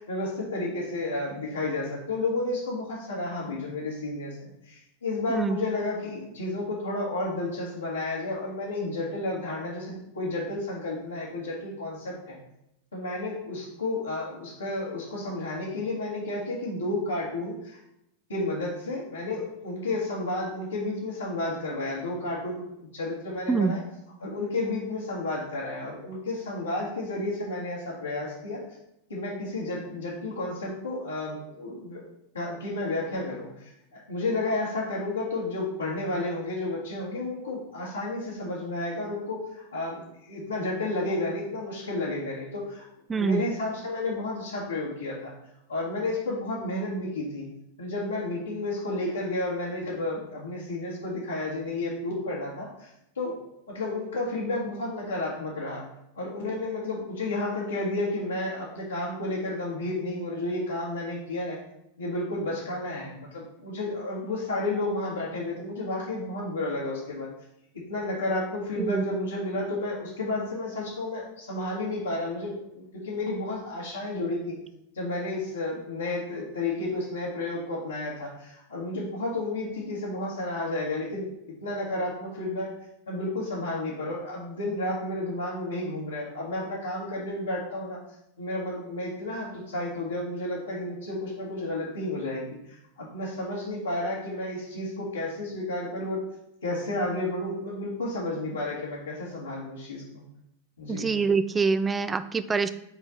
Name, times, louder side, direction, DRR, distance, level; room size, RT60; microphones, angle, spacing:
voice 1, 0.0-12.4 12.9-17.8 18.3-22.6 22.9-23.8 24.2-28.6 29.1-32.0 32.3-40.0 40.3-42.9 43.1-45.3 45.7-47.4 47.8-52.9 53.1-53.4 53.7-55.8 56.1-61.6 62.0-67.3 67.9-74.5 74.9-81.3 81.6-82.7 83.1-88.0 88.4-96.2 96.6-100.2 100.8-101.1, left 2 dB, 85° left, -8 dB, 1.6 m, -31 dB
voice 2, 43.1-43.4 68.8-69.0 100.9-102.7, right 4 dB, 15° right, 12 dB, 0.4 m, -25 dB
5.5 x 4.5 x 3.9 m, 0.81 s
figure-of-eight pair, 90°, 0 cm